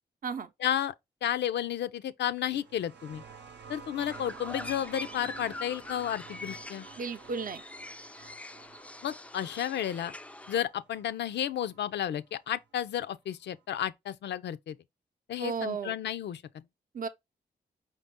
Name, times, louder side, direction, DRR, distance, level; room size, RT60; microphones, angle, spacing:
voice 1, 0.6-0.9 1.2-3.2 3.7-6.9 9.0-10.1 10.5-14.8 15.3-16.6, left 10 dB, 75° left, 0.5 m, -32 dB
sound 1, 2.5-11.8 12.9-13.0, right 6 dB, 75° right, 0.8 m, -50 dB
sound 2, 4.1-10.6, left 2 dB, 5° left, 0.3 m, -44 dB
voice 2, 7.0-7.6 15.4-15.9 16.9-17.1, right 5 dB, 50° right, 0.6 m, -34 dB
5.2 x 2.7 x 3.5 m
supercardioid pair, 45°, 18 cm